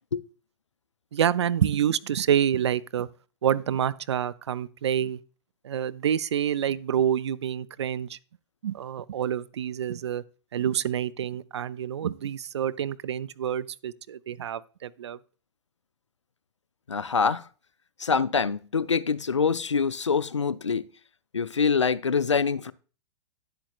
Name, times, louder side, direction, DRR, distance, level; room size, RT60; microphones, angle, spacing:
voice 1, 1.1-3.1 3.4-5.2 5.6-8.2 8.6-10.2 10.5-15.2, right 9 dB, 70° right, 0.4 m, -27 dB
voice 2, 16.9-17.5 18.0-20.8 21.3-22.7, left 5 dB, 85° left, 0.4 m, -25 dB
10.0 x 7.7 x 2.4 m
figure-of-eight pair, 105°, 15 cm